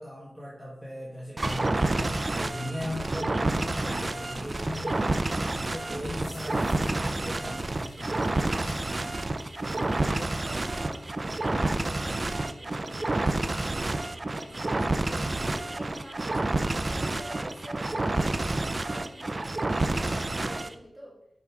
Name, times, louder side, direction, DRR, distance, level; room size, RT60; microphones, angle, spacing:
voice 1, 0.0-5.3 5.6-8.6, left 1 dB, 5° left, -5 dB, 1.6 m, -38 dB
sound 1, 1.4-20.7, right 2 dB, 40° right, 0.5 m, -29 dB
sound 2, 3.9-12.1, left 3 dB, 80° left, 0.7 m, -52 dB
voice 2, 9.7-21.2, equal, 20° right, -5 dB, 2.9 m, -47 dB
5.9 x 5.5 x 4.7 m, 0.83 s
wide cardioid pair, 80°, 0 cm